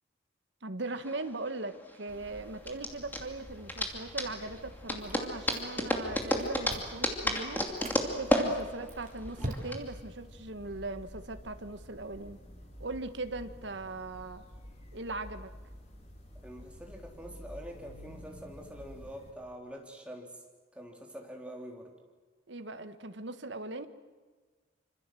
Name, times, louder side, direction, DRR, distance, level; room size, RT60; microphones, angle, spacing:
voice 1, 0.6-7.6 8.1-12.4 12.8-14.4 14.9-15.5 22.5-23.9, right 2 dB, 70° right, 9 dB, 1.5 m, -39 dB
sound 1, 0.9-9.8, left 1 dB, 10° left, 2.6 m, -32 dB
sound 2, 2.1-19.3, equal, 35° left, 3.5 m, -50 dB
Chewing mastication, 5.0-5.9 6.2-7.1 7.6-8.0 8.6-10.0, right 1 dB, 40° right, 3.4 m, -42 dB
voice 2, 16.4-20.3 20.8-21.9, equal, 5° right, 1 dB, 3.6 m, -45 dB
26.5 x 26.0 x 7.8 m, 1.4 s
head